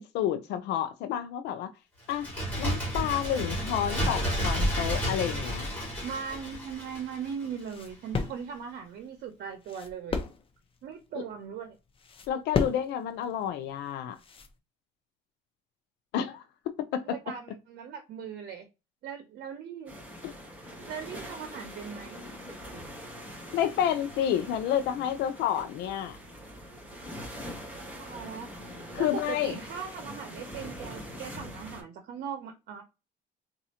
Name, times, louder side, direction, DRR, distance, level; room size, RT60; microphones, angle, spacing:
voice 1, 0.0-1.7 2.1-2.3 2.6-5.7 12.3-14.2 16.1-16.4 16.9-17.0 20.2-20.3 23.5-26.2 28.9-29.6, left 10 dB, 85° left, 0.6 m, -30 dB
Bird, 2.1-7.6 7.9-8.0, equal, 10° left, 2.2 m, -31 dB
voice 2, 6.0-10.2 10.8-11.8 17.0-18.7 19.0-19.9 20.9-22.2 27.7-28.5 29.0-32.8, right 7 dB, 70° right, 0.7 m, -39 dB
sound 1, 7.2-14.6, left 5 dB, 30° left, 0.7 m, -36 dB
sound 2, 19.9-31.8, equal, 10° right, 2.3 m, -43 dB
4.0 x 2.5 x 2.8 m
cardioid pair, 110°, 17 cm